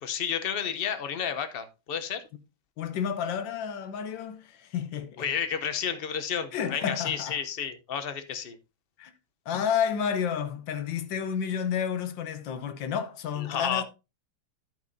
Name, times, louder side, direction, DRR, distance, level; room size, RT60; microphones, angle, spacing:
voice 1, 0.0-2.2 5.2-8.6 13.5-13.8, left 8 dB, 45° left, 0.7 m, -31 dB
voice 2, 2.8-5.3 6.5-7.4 9.0-9.1 9.5-13.8, left 7 dB, 80° left, 1.6 m, -30 dB
10.5 x 8.2 x 2.7 m
omnidirectional pair, 2.1 m